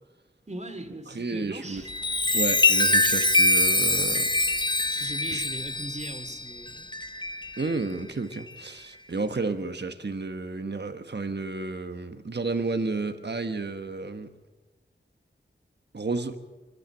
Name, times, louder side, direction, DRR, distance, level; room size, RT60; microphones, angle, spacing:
voice 1, 0.5-1.9 5.0-6.9, right 1 dB, 35° right, 7 dB, 2.6 m, -39 dB
voice 2, 1.1-1.8 2.3-4.3 4.8-5.4 7.6-14.3 15.9-16.4, right 3 dB, 55° right, 8 dB, 1.3 m, -32 dB
Chime, 1.8-7.8 8.3-8.6, left 2 dB, 20° left, 1.0 m, -24 dB
26.0 x 12.0 x 8.9 m, 1.2 s
wide cardioid pair, 45°, 21 cm